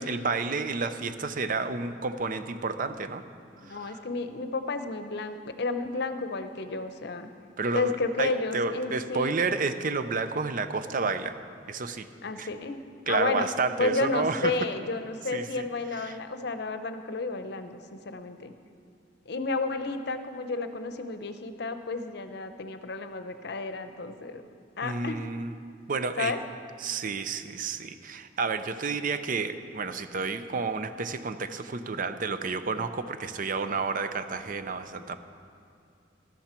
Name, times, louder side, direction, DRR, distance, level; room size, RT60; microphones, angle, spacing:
voice 1, 0.0-3.2 3.6-4.1 7.6-7.9 8.2-11.4 11.7-12.1 12.4-12.5 13.1-14.6 15.3-15.6 15.9-16.2 24.8-25.5 25.9-26.3 26.8-35.2, right 4 dB, 50° right, 10 dB, 0.6 m, -30 dB
voice 2, 3.6-7.3 7.7-9.4 12.2-12.8 13.1-13.5 13.8-18.5 19.3-24.4 24.8-25.2 26.2-26.4, left 3 dB, 65° left, 9 dB, 0.7 m, -31 dB
13.0 x 13.0 x 4.4 m, 2.4 s
head